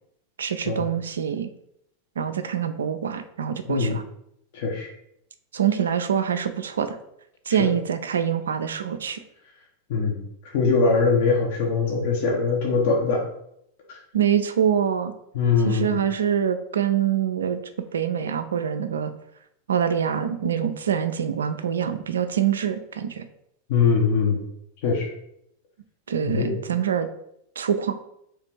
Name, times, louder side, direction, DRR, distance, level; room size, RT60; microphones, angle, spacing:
voice 1, 0.4-1.5 2.2-4.0 5.5-7.0 7.5-9.2 14.1-15.1 15.6-17.6 17.9-19.1 19.7-23.3 26.1-27.1 27.6-28.0, right 8 dB, 65° right, 9 dB, 0.4 m, -25 dB
voice 2, 4.5-4.9 7.6-7.7 9.9-10.2 10.5-13.2 15.3-15.9 23.7-24.4 24.8-25.1 26.2-26.6, left 4 dB, 50° left, -1 dB, 1.0 m, -22 dB
3.4 x 3.3 x 4.5 m, 0.74 s
figure-of-eight pair, 90°, 0 cm